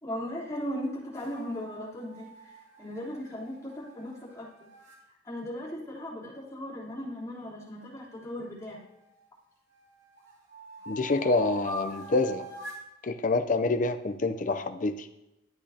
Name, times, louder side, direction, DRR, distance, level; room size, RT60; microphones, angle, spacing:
voice 1, 0.0-4.5 5.2-8.8, equal, 15° left, -8 dB, 3.5 m, -37 dB
sound 1, 1.1-5.0 7.9-9.2 9.7-12.9, equal, 80° right, 2.4 m, -44 dB
voice 2, 10.9-12.5 13.0-15.1, left 3 dB, 45° left, 9 dB, 0.6 m, -27 dB
12.0 x 8.6 x 2.8 m, 0.92 s
head